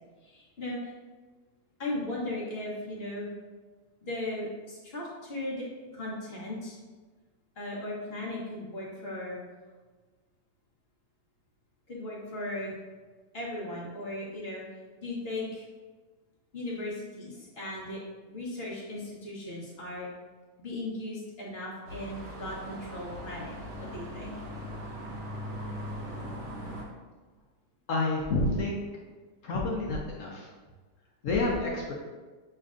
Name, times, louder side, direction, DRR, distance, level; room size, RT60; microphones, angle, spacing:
voice 1, 0.2-0.9 1.8-3.3 4.0-6.8 7.6-9.4 11.9-12.7 13.3-14.6 15.0-15.7 16.5-18.0 18.2-20.1 20.6-24.3, left 1 dB, 40° left, -5 dB, 1.1 m, -37 dB
sound 1, 21.9-26.8, equal, 50° right, 0.8 m, -40 dB
voice 2, 27.9-28.8 29.4-30.5 31.2-31.9, left 2 dB, 60° left, -2 dB, 0.9 m, -29 dB
6.5 x 3.3 x 2.5 m, 1.3 s
omnidirectional pair, 1.9 m